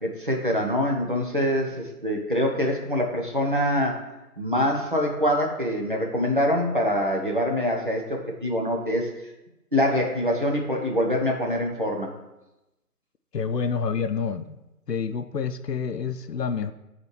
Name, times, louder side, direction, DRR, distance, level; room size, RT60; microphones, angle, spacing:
voice 1, 0.0-4.0 4.4-9.1 9.7-12.1, equal, 35° right, -1 dB, 0.8 m, -25 dB
voice 2, 13.3-14.6 14.9-16.7, left 6 dB, 90° left, 10 dB, 0.6 m, -28 dB
8.6 x 4.0 x 3.1 m, 0.99 s
figure-of-eight pair, 155°, 47 cm